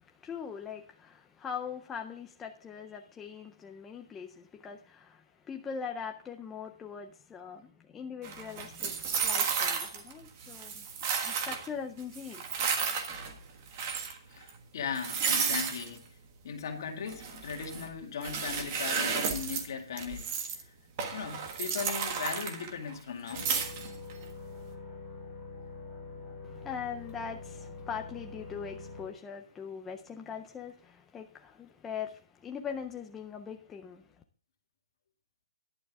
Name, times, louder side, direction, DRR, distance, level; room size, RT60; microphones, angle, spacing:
voice 1, 0.0-10.9 11.2-12.4 26.4-34.2, left 7 dB, 5° left, 0.4 m, -41 dB
sound 1, 8.2-10.1 10.4-11.7 12.1-13.4 13.7-14.2 14.5-14.6 14.9-15.9 17.1-17.9 18.2-19.7 20.0-20.6 21.0-23.0 23.3-24.1, right 6 dB, 30° right, 1.4 m, -33 dB
voice 2, 14.3-16.0 16.4-20.7 21.1-23.5, left 6 dB, 45° left, 2.2 m, -38 dB
sound 2, 23.3-29.1, left 3 dB, 10° right, 3.1 m, -45 dB
11.0 x 10.5 x 3.6 m
hypercardioid pair, 180°, 3 cm